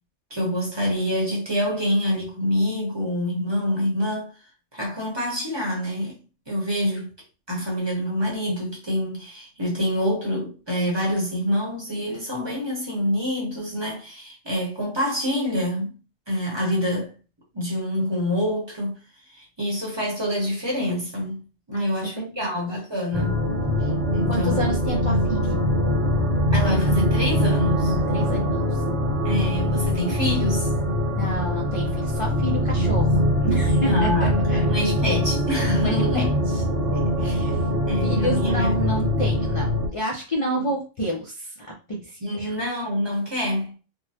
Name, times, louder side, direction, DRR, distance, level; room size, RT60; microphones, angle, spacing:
voice 1, 0.3-4.3 4.7-6.1 6.5-7.1 7.5-15.9 16.3-17.1 17.5-19.0 19.3-21.4 21.7-23.4 24.1-24.8 26.5-27.9 29.2-30.7 33.9-36.3 37.2-37.4 37.8-38.9 42.2-43.7, left 1 dB, 25° right, 0.9 m, -26 dB
voice 2, 21.7-22.5 24.3-25.6 28.1-28.8 31.2-34.6 35.8-42.5, right 1 dB, 50° left, 0.4 m, -30 dB
sound 1, 23.1-39.9, left 1 dB, 70° right, 1.3 m, -22 dB
3.6 x 2.1 x 2.7 m
omnidirectional pair, 1.3 m